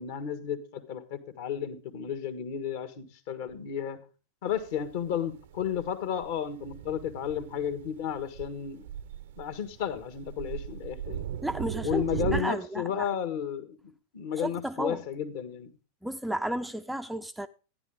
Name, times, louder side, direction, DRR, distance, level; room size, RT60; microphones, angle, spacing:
voice 1, 0.0-4.0 4.4-8.8 9.4-11.2 11.8-15.7, left 9 dB, 50° left, 1.6 m, -33 dB
Thunder, 4.5-12.4, right 11 dB, 55° right, 0.7 m, -38 dB
voice 2, 11.4-12.0 12.3-13.1 14.4-15.0 16.0-17.5, right 1 dB, 5° right, 0.5 m, -33 dB
14.0 x 10.5 x 3.6 m
figure-of-eight pair, 90°, 0 cm